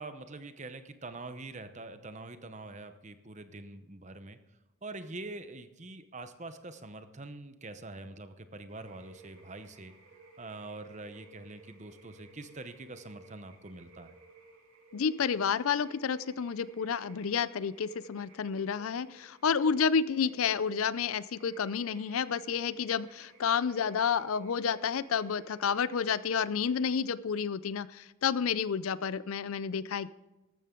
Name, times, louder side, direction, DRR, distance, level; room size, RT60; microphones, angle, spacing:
voice 1, 0.0-4.4 4.8-9.9 10.4-14.1, right 2 dB, 35° right, 10 dB, 0.8 m, -44 dB
sound 1, 8.7-27.0, right 3 dB, 80° right, 2.5 m, -57 dB
voice 2, 14.9-30.1, left 6 dB, 80° left, 18 dB, 0.5 m, -30 dB
14.0 x 12.5 x 3.8 m, 1.0 s
head